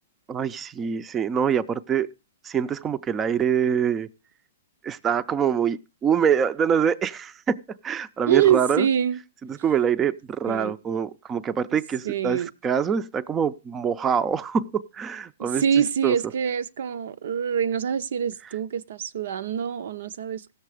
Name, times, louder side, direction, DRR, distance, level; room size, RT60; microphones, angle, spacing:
voice 1, 0.3-2.1 2.4-4.1 4.8-8.9 9.6-15.6 16.0-16.1, right 7 dB, 20° right, 0.5 m, -25 dB
voice 2, 8.3-9.2 10.4-10.8 12.0-12.5 15.4-20.6, right 8 dB, 70° right, 0.6 m, -25 dB
16.0 x 6.8 x 4.9 m
hypercardioid pair, 135°, 0 cm